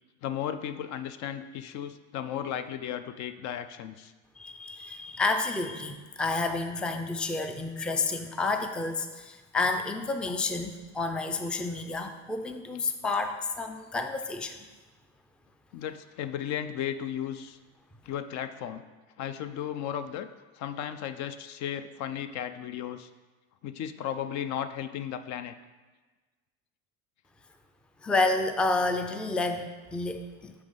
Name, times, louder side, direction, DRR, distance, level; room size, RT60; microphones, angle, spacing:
voice 1, 0.2-4.1 15.7-17.6 18.0-18.8 19.2-20.3 20.6-23.1 23.6-25.5, left 9 dB, 60° left, 11 dB, 0.5 m, -35 dB
voice 2, 4.4-14.7 28.0-30.5, left 3 dB, 5° left, 7 dB, 0.3 m, -30 dB
7.0 x 3.3 x 5.2 m, 1.3 s
supercardioid pair, 95°, 32 cm